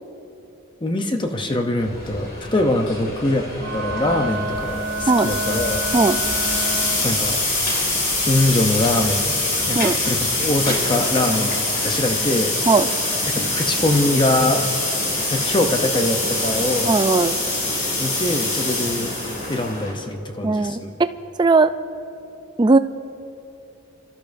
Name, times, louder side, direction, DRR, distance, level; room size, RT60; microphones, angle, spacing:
voice 1, 0.8-3.5 3.7-5.8 7.0-7.4 8.2-9.3 9.7-12.5 13.3-14.6 15.3-17.0 18.0-19.1 19.5-21.0, left 1 dB, 25° left, 5 dB, 0.6 m, -23 dB
sound 1, 1.8-19.9, left 1 dB, 45° left, 2.0 m, -32 dB
Wind instrument woodwind instrument, 3.6-7.2, right 1 dB, 80° right, 1.9 m, -29 dB
sound 2, 4.8-19.7, left 2 dB, 80° left, 3.7 m, -24 dB
voice 2, 16.8-17.4 20.4-21.1 21.4-21.7 22.6-22.8, right 3 dB, 20° right, 11 dB, 0.3 m, -17 dB
28.5 x 13.0 x 2.6 m, 2.8 s
head